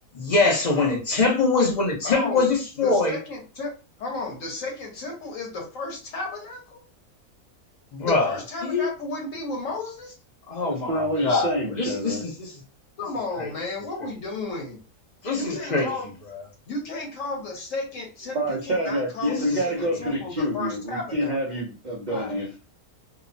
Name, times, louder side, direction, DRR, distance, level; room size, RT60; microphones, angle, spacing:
voice 1, 0.1-3.2 7.9-8.3 8.6-8.8 10.5-12.5 13.4-13.5 15.3-15.9 19.3-19.6 22.1-22.4, left 3 dB, 45° left, -1 dB, 0.6 m, -23 dB
voice 2, 2.0-2.4 2.8-6.8 8.0-10.2 13.0-14.8 15.3-16.1 16.7-21.6, left 3 dB, 60° left, -1 dB, 1.2 m, -33 dB
voice 3, 10.7-12.2 18.3-22.6, equal, 85° right, -2 dB, 0.4 m, -27 dB
2.9 x 2.0 x 2.5 m, 0.33 s
omnidirectional pair, 1.6 m